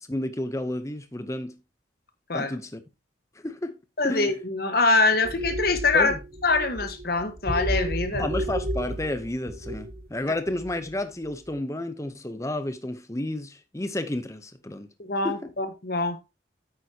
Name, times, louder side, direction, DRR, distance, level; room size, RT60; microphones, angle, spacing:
voice 1, 0.0-1.6 2.3-2.8 3.3-3.8 4.0-4.4 5.9-6.2 8.2-14.9 15.2-15.5, left 1 dB, 15° left, 0.8 m, -31 dB
voice 2, 4.0-6.1 6.4-8.2 15.0-16.2, left 3 dB, 50° left, 1.4 m, -24 dB
sound 1, 5.2-10.9 11.2-11.5, right 1 dB, 50° right, 4.2 m, -32 dB
9.3 x 8.3 x 2.8 m
head